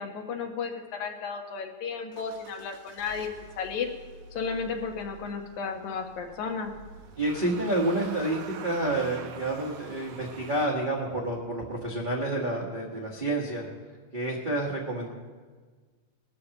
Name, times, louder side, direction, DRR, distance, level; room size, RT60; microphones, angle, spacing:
voice 1, 0.0-3.9 4.3-6.7, left 5 dB, 85° left, 3 dB, 2.6 m, -33 dB
Motor vehicle (road) / Engine starting, 2.1-10.7, right 6 dB, 75° right, 1.2 m, -46 dB
voice 2, 7.2-13.7 14.1-15.1, right 1 dB, 60° right, -3 dB, 0.5 m, -29 dB
20.0 x 13.5 x 2.9 m, 1.5 s
omnidirectional pair, 3.3 m